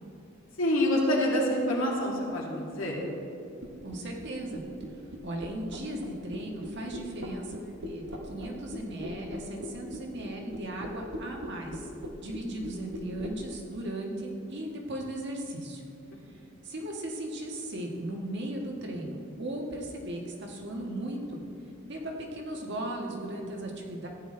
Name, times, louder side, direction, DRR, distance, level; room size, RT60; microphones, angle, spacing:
voice 1, 0.6-3.0, left 1 dB, 85° left, -3 dB, 2.3 m, -26 dB
sound 1, 3.6-13.4, equal, 80° right, 1.2 m, -39 dB
voice 2, 3.8-4.6 5.2-11.9 12.2-15.8 16.6-21.4 21.9-24.1, right 1 dB, 60° right, 0 dB, 1.5 m, -37 dB
14.5 x 9.3 x 3.3 m, 2.5 s
head